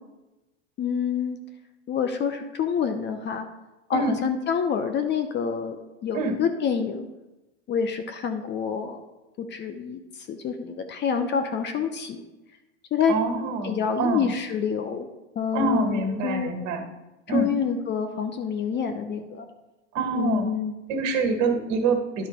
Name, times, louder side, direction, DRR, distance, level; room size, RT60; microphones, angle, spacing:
voice 1, 0.8-1.4 1.9-3.5 3.9-5.8 6.0-7.1 7.7-9.0 9.4-10.0 10.3-12.2 12.9-13.1 13.6-15.1 15.4-16.5 17.3-19.5 20.1-20.7, left 7 dB, 30° left, 7 dB, 0.7 m, -27 dB
voice 2, 13.1-14.3 15.5-16.9 17.3-17.5 19.9-20.5 20.9-22.3, right 3 dB, 50° right, 5 dB, 1.7 m, -26 dB
11.0 x 3.9 x 5.2 m, 1.0 s
hypercardioid pair, 115°, 38 cm